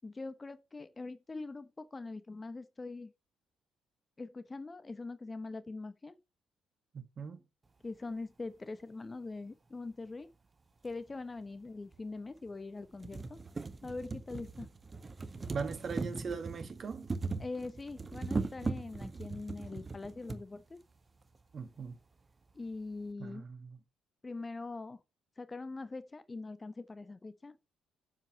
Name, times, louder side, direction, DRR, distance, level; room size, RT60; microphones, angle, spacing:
voice 1, 0.0-3.1 4.2-6.2 7.8-10.3 10.8-13.4 13.8-14.7 17.4-20.8 22.5-23.4 24.2-25.0 25.4-27.6, left 3 dB, 25° left, 1.0 m, -43 dB
voice 2, 6.9-7.4 15.5-17.1 21.5-22.0 23.2-23.8, right 5 dB, 45° right, 2.0 m, -40 dB
sound 1, 10.9-11.0 11.9-12.0 12.5-12.6 12.8-20.4 21.3-21.4 21.7-21.8, right 3 dB, 30° right, 1.3 m, -39 dB
8.4 x 7.5 x 5.6 m
hypercardioid pair, 50°, 0 cm